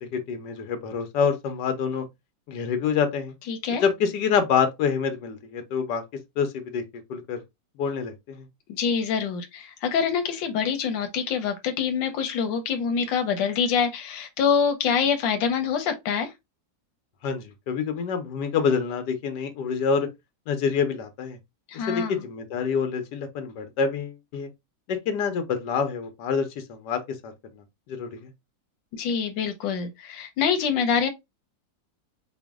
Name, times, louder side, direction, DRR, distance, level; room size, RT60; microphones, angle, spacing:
voice 1, 0.0-2.0 2.5-3.3 3.8-6.0 6.4-6.8 7.1-7.4 7.8-8.5 17.2-20.1 20.5-21.4 21.7-24.5 24.9-28.3, left 6 dB, 70° left, 1.4 m, -27 dB
voice 2, 3.5-3.8 8.7-16.3 21.7-22.2 28.9-31.1, left 6 dB, 90° left, 1.4 m, -25 dB
5.0 x 2.1 x 3.5 m
omnidirectional pair, 1.9 m